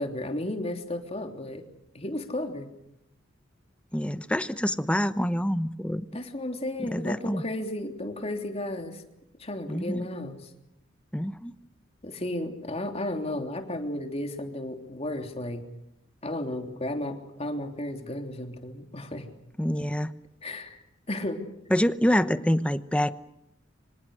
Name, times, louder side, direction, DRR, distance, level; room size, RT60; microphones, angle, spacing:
voice 1, 0.0-1.6 1.9-2.7 6.1-9.0 9.4-10.5 12.0-15.6 16.2-19.3 20.4-20.8 21.1-21.4, left 1 dB, 35° left, 4 dB, 3.2 m, -33 dB
voice 2, 3.9-6.1 6.9-7.4 9.7-10.1 11.1-11.5 19.6-20.1 21.7-23.1, equal, 5° left, 13 dB, 0.9 m, -26 dB
26.5 x 25.5 x 6.5 m, 0.82 s
head